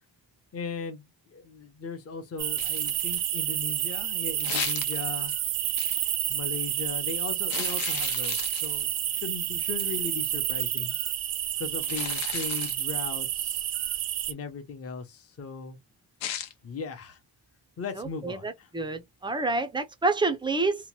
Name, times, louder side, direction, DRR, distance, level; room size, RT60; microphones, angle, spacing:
voice 1, 0.5-5.3 6.3-10.9 11.6-13.6 14.3-15.8 16.6-17.2 17.8-18.7, left 5 dB, 30° left, 0.7 m, -38 dB
sound 1, 2.4-14.3, right 12 dB, 85° right, 0.7 m, -29 dB
sound 2, 2.6-3.3 4.4-5.3 5.8-6.1 7.5-9.0 9.8-10.0 11.8-12.8 16.2-16.5, left 10 dB, 90° left, 0.7 m, -36 dB
voice 2, 18.0-20.9, right 3 dB, 10° right, 0.3 m, -28 dB
2.8 x 2.1 x 3.0 m
wide cardioid pair, 145°, 45 cm